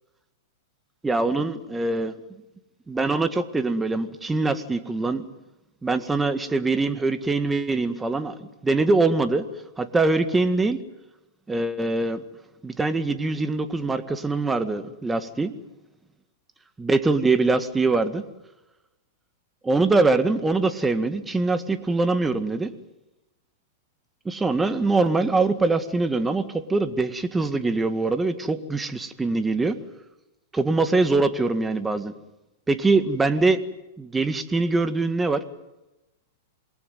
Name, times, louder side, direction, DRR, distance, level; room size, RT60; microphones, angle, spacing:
voice 1, 1.0-2.1 2.9-5.3 5.8-8.4 8.6-9.5 9.8-10.8 11.5-12.2 12.6-15.5 16.8-18.2 19.6-22.7 24.2-29.8 30.5-32.1 32.7-33.6 34.0-35.4, right 3 dB, 10° right, 10 dB, 1.8 m, -23 dB
27.5 x 21.5 x 9.4 m, 0.99 s
hypercardioid pair, 125°, 0 cm